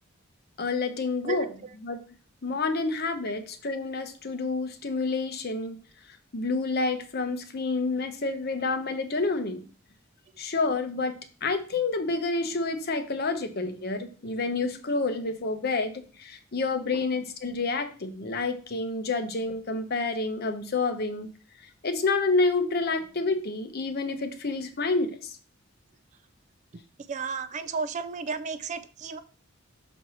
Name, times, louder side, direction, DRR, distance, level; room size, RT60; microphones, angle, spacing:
voice 1, 0.6-1.5 1.8-2.0 2.4-5.8 6.3-9.6 10.4-21.3 21.8-25.4, left 3 dB, 50° left, 8 dB, 0.8 m, -29 dB
voice 2, 27.1-29.2, right 4 dB, 35° right, 13 dB, 0.4 m, -33 dB
6.2 x 4.5 x 4.2 m, 0.39 s
head